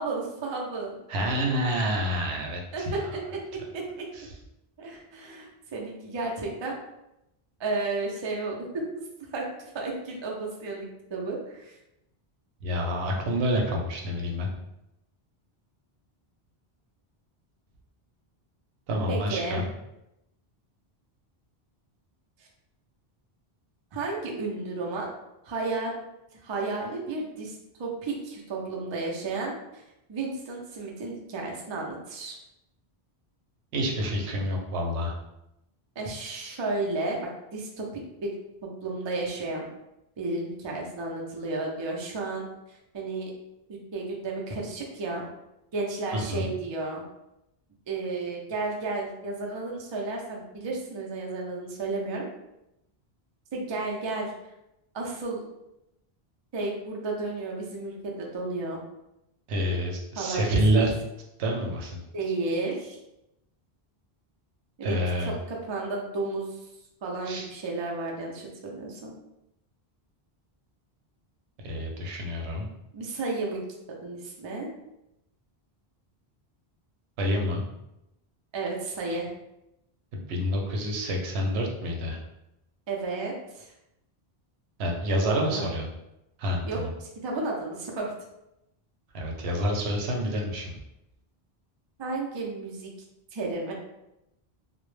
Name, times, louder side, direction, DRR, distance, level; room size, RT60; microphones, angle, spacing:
voice 1, 0.0-1.0 2.7-3.2 3.7-4.0 4.8-6.7 7.6-8.8 9.3-11.8 19.1-19.6 22.4-22.5 23.9-25.1 25.4-25.9 26.4-29.8 30.1-32.4 36.0-37.2 37.5-38.3 38.8-39.6 40.2-43.3 43.7-45.3 45.7-47.0 47.9-52.3 53.5-54.3 54.9-55.4 56.5-58.8 60.2-60.4 60.8-60.9 62.1-63.0 64.8-66.6 67.0-69.1 72.9-73.6 74.0-74.7 78.5-79.3 82.9-83.7 85.2-85.7 86.6-88.1 92.0-92.9 93.3-93.7, right 3 dB, 45° right, -1 dB, 0.3 m, -32 dB
voice 2, 1.1-2.9 4.1-4.2 12.6-14.5 18.9-19.7 33.7-35.1 46.3-46.5 59.5-60.9 61.4-62.0 64.8-65.4 67.3-67.5 71.6-72.7 77.2-77.6 80.1-82.2 84.8-85.9 86.4-86.9 89.1-90.7, equal, 85° right, 0 dB, 0.8 m, -28 dB
2.1 x 2.0 x 3.1 m, 0.88 s
omnidirectional pair, 1.1 m